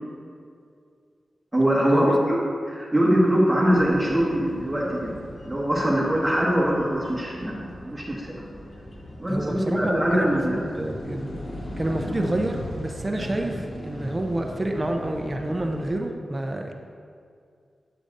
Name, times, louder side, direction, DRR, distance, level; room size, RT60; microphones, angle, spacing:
voice 1, 1.5-2.4 2.7-5.1 5.5-8.4 9.2-10.6, equal, 10° right, -5 dB, 1.6 m, -22 dB
sound 1, 3.6-15.9, left 1 dB, 50° left, 1.0 m, -38 dB
voice 2, 9.2-11.2 11.8-16.7, right 1 dB, 25° right, 3 dB, 0.5 m, -28 dB
8.6 x 6.7 x 2.6 m, 2.3 s
wide cardioid pair, 85°, 0 cm